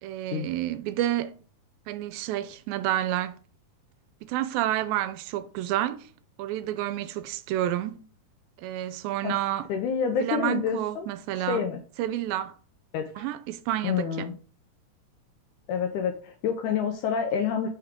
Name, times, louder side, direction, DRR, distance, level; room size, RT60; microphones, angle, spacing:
voice 1, 0.0-1.4 1.9-3.4 4.2-6.1 6.4-8.0 8.6-9.7 10.2-11.6 12.0-12.5 13.2-14.3, right 13 dB, 85° right, 2.3 m, -29 dB
voice 2, 9.7-11.1 11.5-11.8 12.9-13.1 13.8-14.3 15.7-17.7, left 7 dB, 80° left, 1.8 m, -28 dB
5.8 x 3.6 x 4.8 m
omnidirectional pair, 4.1 m